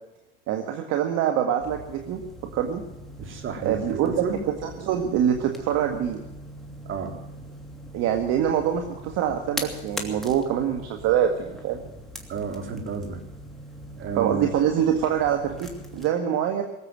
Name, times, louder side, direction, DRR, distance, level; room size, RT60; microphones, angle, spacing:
voice 1, 0.5-2.2 2.5-2.8 3.6-6.2 7.9-11.9 14.2-16.6, right 9 dB, 60° right, 4 dB, 1.8 m, -25 dB
sound 1, 1.6-16.1, equal, ahead, 2.8 m, -41 dB
voice 2, 3.2-4.4 6.9-7.2 12.3-13.2 14.0-14.5, right 6 dB, 40° right, 3 dB, 3.8 m, -31 dB
19.0 x 8.1 x 9.2 m, 0.99 s
supercardioid pair, 95°, 29 cm